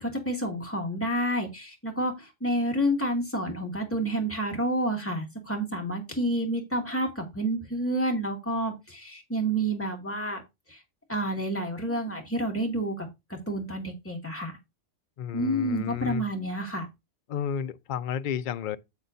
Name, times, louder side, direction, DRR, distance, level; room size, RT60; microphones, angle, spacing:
voice 1, 0.0-10.4 10.7-10.8 11.1-13.1 13.5-14.5 15.3-16.9, right 1 dB, 10° left, 2.3 m, -29 dB
voice 2, 15.2-16.2 17.3-18.8, left 8 dB, 55° left, 0.6 m, -32 dB
8.3 x 8.1 x 2.7 m
omnidirectional pair, 1.2 m